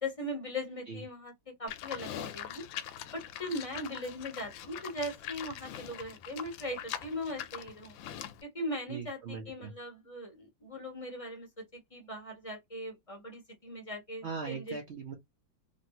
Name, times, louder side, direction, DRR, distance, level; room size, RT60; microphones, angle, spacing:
voice 1, 0.0-2.6 3.1-8.0 8.4-14.8, left 1 dB, 25° left, 0.8 m, -39 dB
Livestock farm animals working animals, 1.7-8.4, left 10 dB, 85° left, 1.3 m, -43 dB
voice 2, 8.9-9.7 14.2-15.1, right 5 dB, 85° right, 0.5 m, -40 dB
3.1 x 2.6 x 2.8 m
omnidirectional pair, 2.1 m